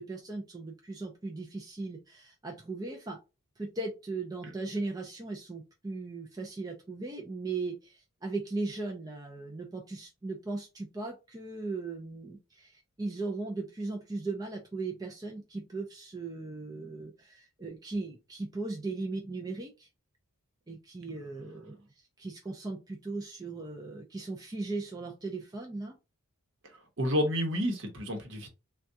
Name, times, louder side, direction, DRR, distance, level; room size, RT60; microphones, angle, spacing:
voice 1, 0.0-3.2 3.6-19.9 20.7-21.9 22.2-26.0, right 3 dB, 15° right, 0 dB, 0.4 m, -38 dB
voice 2, 27.0-28.5, equal, 55° right, 3 dB, 0.9 m, -29 dB
3.5 x 2.3 x 2.7 m, 0.28 s
head